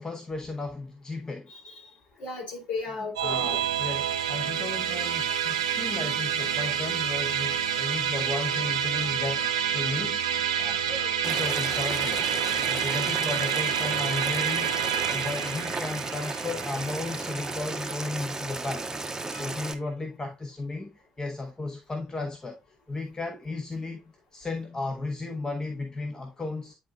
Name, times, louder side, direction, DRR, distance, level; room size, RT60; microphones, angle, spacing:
voice 1, 0.0-1.5 3.2-10.9 11.2-12.2 12.6-18.9 19.3-22.6 22.9-24.0 24.3-26.7, left 3 dB, 25° left, 1.3 m, -35 dB
voice 2, 1.5-1.9 2.2-3.6 5.5-6.1 10.8-11.1 19.3-19.5, left 3 dB, 60° left, 3.5 m, -37 dB
Musical instrument, 3.2-18.7, right 9 dB, 85° right, 0.6 m, -28 dB
Boiling, 11.2-19.7, right 3 dB, 20° right, 0.9 m, -34 dB
10.0 x 4.0 x 2.4 m
hypercardioid pair, 50°, 3 cm